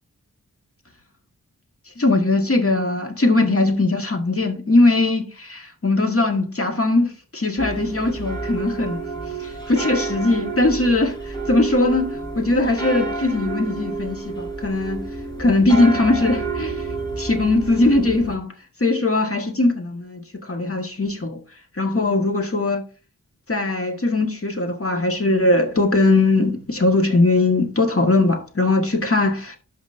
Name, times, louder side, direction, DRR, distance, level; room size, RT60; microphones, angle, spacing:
voice 1, 2.0-9.1 9.4-11.2 11.5-15.1 15.4-16.7 17.2-18.5 18.8-21.4 21.8-22.8 23.5-29.6, left 2 dB, 40° left, 1.7 m, -20 dB
sound 1, 7.6-18.4, right 3 dB, 15° left, 4.5 m, -30 dB
12.0 x 5.2 x 2.7 m
wide cardioid pair, 55°, 34 cm